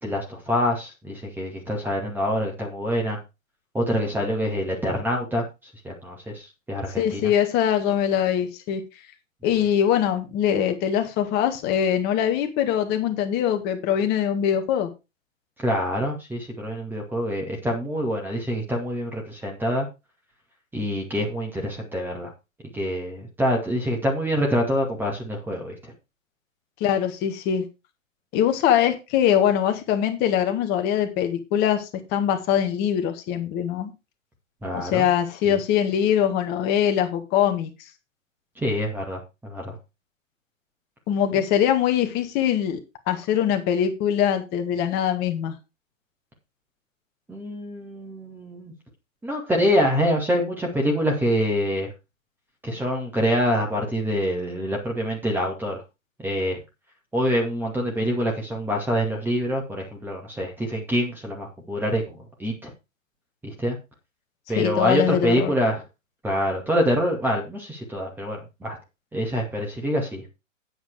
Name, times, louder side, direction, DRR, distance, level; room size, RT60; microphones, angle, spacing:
voice 1, 0.0-3.2 3.7-5.5 5.8-7.2 15.6-19.9 20.7-22.3 22.7-25.9 34.6-35.1 35.5-35.6 38.6-39.8 47.3-48.7 49.2-51.9 52.6-55.8 56.2-56.6 57.1-62.7 63.4-63.8 64.5-65.8 66.2-68.8 69.1-70.2, equal, 5° right, 0 dB, 2.2 m, -26 dB
voice 2, 7.0-8.8 9.4-14.9 26.8-27.6 28.3-33.9 34.7-37.7 41.1-42.8 43.1-45.5 64.6-65.5, left 9 dB, 25° left, 6 dB, 1.8 m, -22 dB
9.4 x 7.9 x 4.7 m, 0.26 s
figure-of-eight pair, 130°, 39 cm